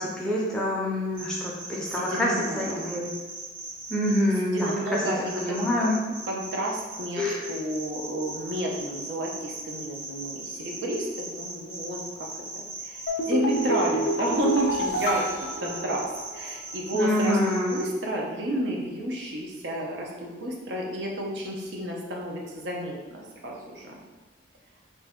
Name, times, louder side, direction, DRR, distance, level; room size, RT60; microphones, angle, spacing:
voice 1, 0.0-3.1 3.9-5.9 7.2-7.4 16.9-17.8, left 1 dB, 5° left, -5 dB, 0.4 m, -26 dB
sound 1, 1.1-4.2 4.6-17.8, right 2 dB, 40° right, 1.0 m, -39 dB
voice 2, 1.8-2.8 4.4-5.9 6.3-12.1 12.5-24.0, right 1 dB, 70° right, -1 dB, 0.5 m, -31 dB
sound 2, 13.1-16.5 16.8-16.9, right 1 dB, 70° left, 0.3 m, -29 dB
2.6 x 2.1 x 3.5 m, 1.2 s
head